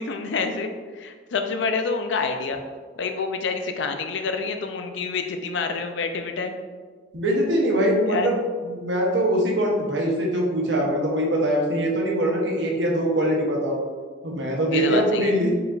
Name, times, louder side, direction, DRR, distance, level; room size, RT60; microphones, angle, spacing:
voice 1, 0.0-2.6 3.0-6.5 8.1-8.3 14.7-15.3, left 4 dB, 80° left, 6 dB, 0.4 m, -27 dB
voice 2, 7.1-8.4 8.6-13.8 14.2-15.5, right 1 dB, 80° right, -1 dB, 0.9 m, -22 dB
4.8 x 3.9 x 2.4 m, 1.5 s
head